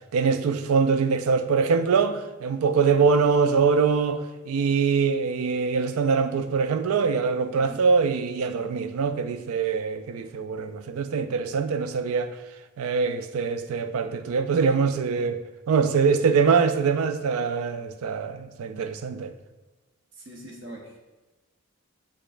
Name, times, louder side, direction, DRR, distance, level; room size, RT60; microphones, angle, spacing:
voice 1, 0.1-4.2 4.5-12.3 12.8-15.4 15.7-19.3, right 5 dB, 85° right, 0.4 m, -23 dB
voice 2, 7.5-7.8 20.2-21.0, right 1 dB, 55° right, 0.8 m, -42 dB
4.9 x 4.3 x 2.4 m
head